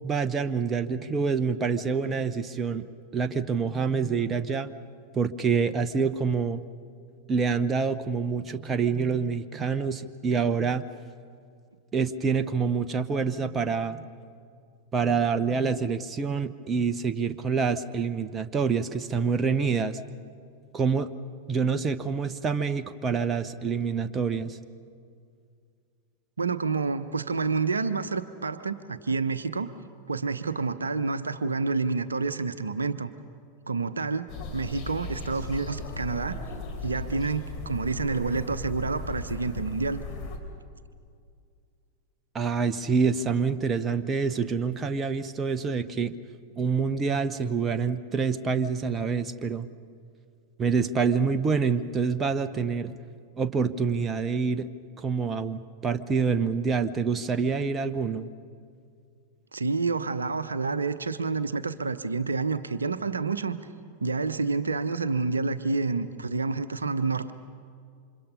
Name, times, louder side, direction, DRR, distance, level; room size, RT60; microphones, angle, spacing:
voice 1, 0.0-2.8 3.1-4.7 5.1-6.6 7.3-10.8 11.9-14.0 14.9-20.0 20.7-21.1 21.5-24.6 42.3-46.2 46.6-49.7 50.6-52.9 53.4-54.7 55.0-58.3, right 5 dB, 20° right, 11 dB, 0.9 m, -26 dB
voice 2, 26.4-29.7 30.1-33.1 33.7-34.3 34.5-36.4 36.8-40.0 59.5-63.6 64.0-67.3, right 4 dB, 75° right, 12 dB, 0.8 m, -28 dB
sound 1, 34.3-40.4, left 3 dB, 35° left, 3.7 m, -37 dB
29.0 x 26.0 x 5.6 m, 2.3 s
figure-of-eight pair, 90°, 0 cm